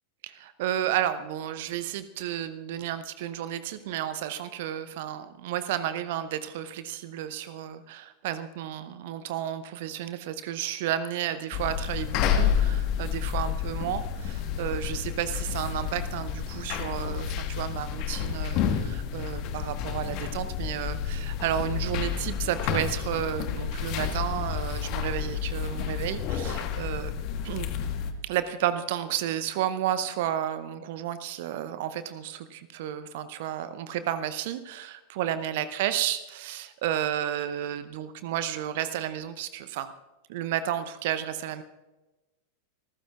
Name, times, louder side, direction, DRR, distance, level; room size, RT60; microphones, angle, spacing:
voice 1, 0.2-27.1 27.4-27.7 28.2-39.9 40.3-41.6, right 11 dB, 50° right, 13 dB, 0.7 m, -32 dB
sound 1, 11.5-28.1, left 8 dB, 40° left, 1.4 m, -30 dB
27.5 x 14.5 x 2.4 m, 1.1 s
figure-of-eight pair, 90°, 0 cm